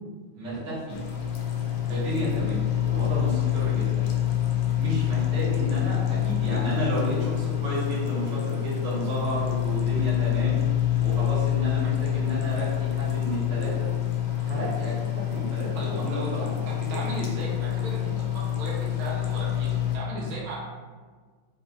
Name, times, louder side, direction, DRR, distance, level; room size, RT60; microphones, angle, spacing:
voice 1, 0.3-1.0 1.8-4.0 4.7-10.6 11.0-13.9 14.4-16.5 16.9-17.0, right 1 dB, 60° right, -10 dB, 1.9 m, -32 dB
sound 1, 0.9-20.0, left 12 dB, 75° left, 1.2 m, -27 dB
voice 2, 15.7-20.6, right 1 dB, 80° right, -4 dB, 1.6 m, -35 dB
4.3 x 2.6 x 2.3 m, 1.5 s
omnidirectional pair, 2.3 m